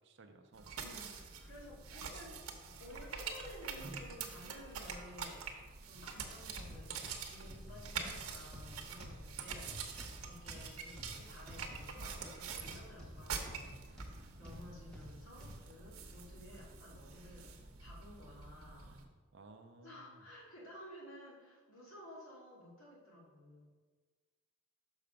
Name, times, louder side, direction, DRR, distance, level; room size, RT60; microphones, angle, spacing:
voice 1, 0.0-0.8 6.1-6.3 18.8-20.3, right 2 dB, 55° right, 6 dB, 0.6 m, -58 dB
sound 1, 0.5-19.1, right 5 dB, 80° right, 0.9 m, -46 dB
voice 2, 0.8-2.4 2.8-5.5 5.8-17.5 17.8-18.9 19.8-23.7, left 1 dB, 65° left, -6 dB, 2.6 m, -54 dB
sound 2, 6.5-15.6 16.2-16.3 17.0-17.1, equal, 5° left, 1.3 m, -51 dB
6.3 x 5.7 x 5.1 m, 1.4 s
head